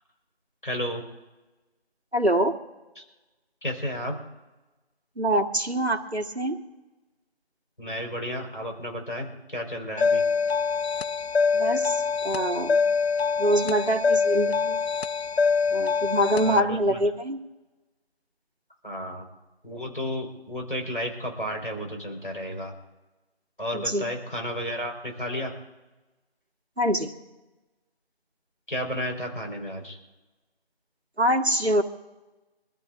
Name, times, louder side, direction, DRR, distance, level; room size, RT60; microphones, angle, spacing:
voice 1, 0.6-1.0 3.0-3.1 3.6-4.2 7.8-10.2 16.4-17.0 18.8-19.2 19.6-22.7 23.6-25.5 28.7-30.0, equal, 55° left, 2 dB, 4.6 m, -32 dB
voice 2, 2.1-2.6 5.2-6.6 11.5-12.8 13.4-14.8 15.7-17.4 23.7-24.0 26.8-27.1 31.2-31.8, right 1 dB, 80° right, 5 dB, 2.0 m, -24 dB
sound 1, 10.0-16.6, left 5 dB, 75° left, 0.5 m, -24 dB
26.0 x 13.5 x 2.6 m, 1.1 s
figure-of-eight pair, 180°, 32 cm